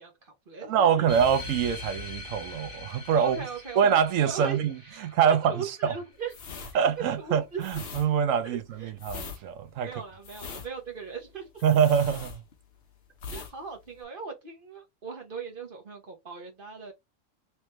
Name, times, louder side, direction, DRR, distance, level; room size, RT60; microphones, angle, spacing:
voice 1, 0.0-0.9 3.2-3.9 4.3-6.3 7.0-7.7 8.4-8.9 9.8-11.6 13.3-16.9, right 5 dB, 45° right, 1.2 m, -39 dB
voice 2, 0.7-3.4 3.8-4.8 5.0-5.9 6.7-9.9 11.6-12.4, right 7 dB, 75° right, 1.0 m, -25 dB
sound 1, 1.1-6.1, left 3 dB, 30° left, 1.0 m, -42 dB
sound 2, 6.3-12.8 13.1-13.5 13.8-14.0, left 5 dB, 55° left, 1.0 m, -42 dB
3.3 x 3.1 x 3.0 m
omnidirectional pair, 1.4 m